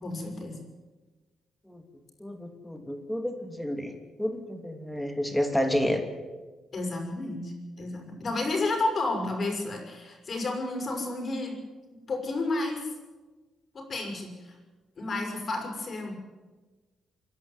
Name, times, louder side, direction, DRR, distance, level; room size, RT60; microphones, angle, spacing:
voice 1, 0.0-0.6 6.7-11.6 12.1-12.9 13.7-14.5 15.0-16.1, left 2 dB, 45° left, 3 dB, 6.0 m, -31 dB
voice 2, 2.2-6.1, equal, 5° left, 5 dB, 2.9 m, -30 dB
27.0 x 11.0 x 9.7 m, 1.3 s
cardioid pair, 95°, 0 cm